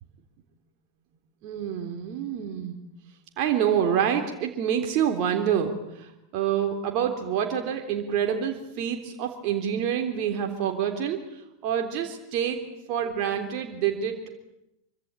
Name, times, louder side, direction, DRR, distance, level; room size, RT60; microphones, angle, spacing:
voice 1, 1.4-2.8 3.4-12.6 12.9-14.3, right 8 dB, 45° right, 3 dB, 3.5 m, -27 dB
26.5 x 24.5 x 8.9 m, 0.86 s
figure-of-eight pair, 90°, 0 cm